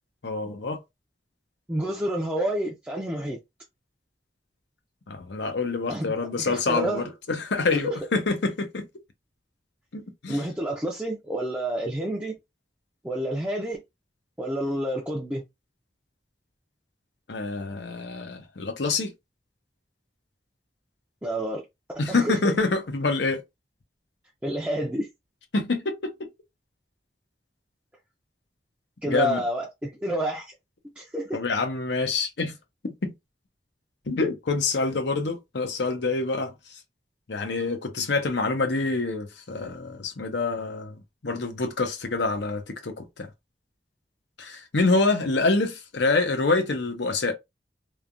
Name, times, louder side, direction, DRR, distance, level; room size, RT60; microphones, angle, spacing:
voice 1, 0.2-0.8 5.1-8.8 9.9-10.4 17.3-19.1 22.0-23.4 25.5-26.1 29.0-29.4 31.3-32.5 32.8-33.1 34.1-36.8 37.3-41.0 41.2-43.3 44.4-47.3, left 3 dB, 85° left, 0.8 m, -26 dB
voice 2, 1.7-3.4 5.9-7.1 7.7-8.0 10.3-12.4 13.0-13.8 14.4-15.4 21.2-21.6 22.1-22.5 24.4-25.1 29.0-30.5 30.8-31.4, right 1 dB, 10° right, 0.4 m, -29 dB
3.3 x 2.2 x 2.5 m
head